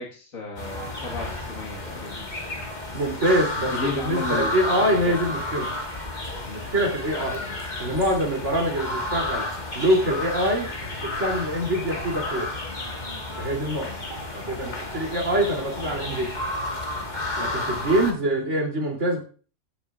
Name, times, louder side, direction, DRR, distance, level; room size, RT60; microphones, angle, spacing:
voice 1, 0.0-2.3 3.7-5.4 17.6-17.7, left 3 dB, 80° left, -1 dB, 2.1 m, -34 dB
sound 1, 0.6-18.1, left 2 dB, 35° left, 1.8 m, -32 dB
voice 2, 2.9-5.7 6.5-7.4 7.8-9.5 9.7-10.7 11.0-12.5 13.4-13.9 14.3-16.4 17.4-19.2, right 1 dB, 60° right, 1 dB, 3.4 m, -24 dB
14.0 x 9.0 x 2.4 m, 0.39 s
omnidirectional pair, 1.4 m